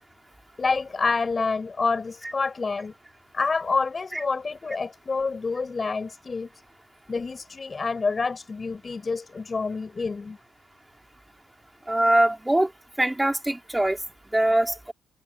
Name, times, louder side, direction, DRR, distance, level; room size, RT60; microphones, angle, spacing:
voice 1, 0.6-2.9 3.3-6.5 7.1-10.4, left 4 dB, 30° left, 8.0 m, -27 dB
voice 2, 11.9-12.7 13.0-14.0 14.3-14.9, right 1 dB, 10° right, 4.3 m, -22 dB
cardioid pair, 90°, 0 cm